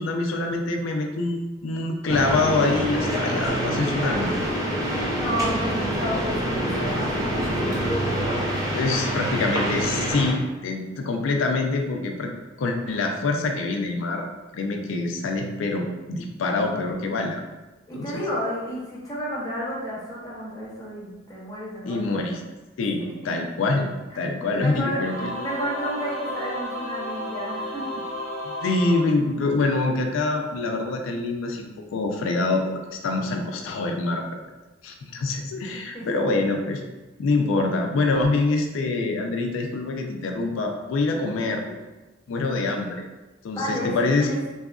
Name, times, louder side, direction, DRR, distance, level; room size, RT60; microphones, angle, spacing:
voice 1, 0.0-4.3 8.7-12.3 12.6-14.3 14.5-17.4 17.9-18.2 21.9-22.4 22.8-23.9 24.2-25.3 28.4-34.4 34.8-36.8 37.2-41.8 42.3-43.0 43.4-44.4, left 3 dB, 80° left, 3 dB, 0.4 m, -25 dB
sound 1, 2.1-10.3, right 1 dB, 20° right, 0.4 m, -26 dB
voice 2, 5.1-7.9 17.9-22.2 24.1-24.2 24.6-25.0 25.4-28.0 35.9-36.2 43.5-44.4, equal, 20° left, -6 dB, 0.7 m, -32 dB
Singing / Musical instrument, 25.0-29.8, equal, 85° right, 0.6 m, -33 dB
2.7 x 2.4 x 2.3 m, 1.1 s
head